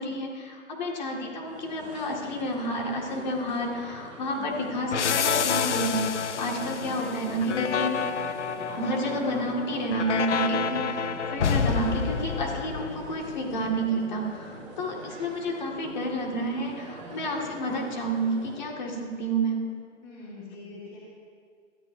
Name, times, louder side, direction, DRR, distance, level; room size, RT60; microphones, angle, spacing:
voice 1, 0.0-8.0 8.8-19.6, right 1 dB, 35° left, 0 dB, 2.0 m, -30 dB
sound 1, 1.5-18.6, right 2 dB, 25° right, 3.0 m, -43 dB
sound 2, 4.9-13.4, left 7 dB, 65° left, 0.7 m, -29 dB
voice 2, 6.5-7.0 20.0-21.0, left 3 dB, 10° left, -7 dB, 1.7 m, -44 dB
20.0 x 14.0 x 2.7 m, 2.1 s
hypercardioid pair, 170°, 39 cm